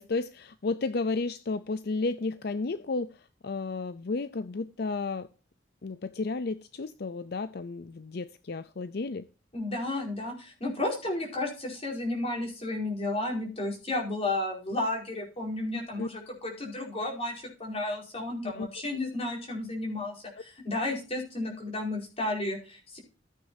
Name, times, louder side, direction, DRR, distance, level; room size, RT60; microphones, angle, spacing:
voice 1, 0.0-5.3 5.8-9.3 16.0-16.1 18.4-19.0, left 3 dB, 55° left, 0.5 m, -33 dB
voice 2, 9.5-23.0, left 2 dB, 30° left, 4.8 m, -32 dB
14.5 x 8.9 x 2.7 m
head